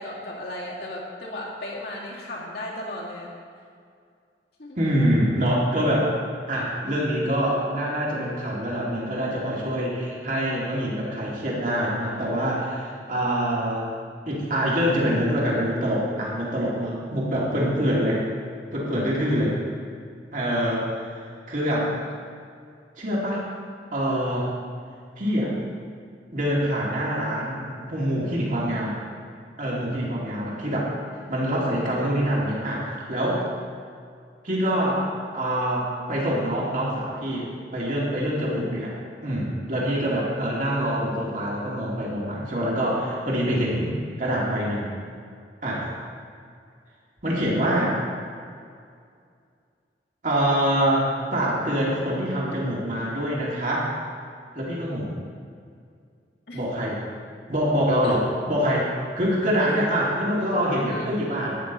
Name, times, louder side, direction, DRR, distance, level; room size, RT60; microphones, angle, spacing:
voice 1, 0.0-3.3 4.6-4.8 29.9-30.2 56.5-56.6 58.0-58.1 60.9-61.1, left 1 dB, 60° left, -4 dB, 2.3 m, -36 dB
voice 2, 4.8-6.1 6.5-13.9 14.3-18.2 18.7-19.5 20.3-20.9 21.5-21.9 23.0-23.5 23.9-24.5 25.2-25.5 26.3-29.0 29.6-30.9 31.3-33.5 34.4-35.0 35.3-37.5 37.7-38.9 39.2-44.9 45.6-45.9 47.2-47.9 50.2-53.9 54.5-55.1 56.5-57.0 57.5-61.6, equal, 50° right, -5 dB, 2.7 m, -25 dB
13.0 x 9.7 x 4.1 m, 2.3 s
head